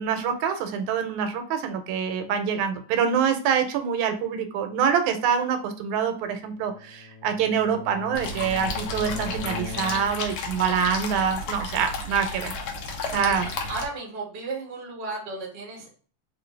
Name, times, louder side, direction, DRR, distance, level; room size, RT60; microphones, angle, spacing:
voice 1, 0.0-12.6 13.1-13.5, right 7 dB, 80° right, 7 dB, 2.0 m, -25 dB
Bowed string instrument, 6.5-10.4, left 4 dB, 85° left, 1.1 m, -39 dB
sound 1, 8.1-13.9, left 3 dB, 70° left, 1.4 m, -32 dB
voice 2, 13.1-15.9, right 3 dB, 65° right, -2 dB, 0.6 m, -34 dB
4.4 x 2.7 x 3.1 m, 0.41 s
omnidirectional pair, 3.3 m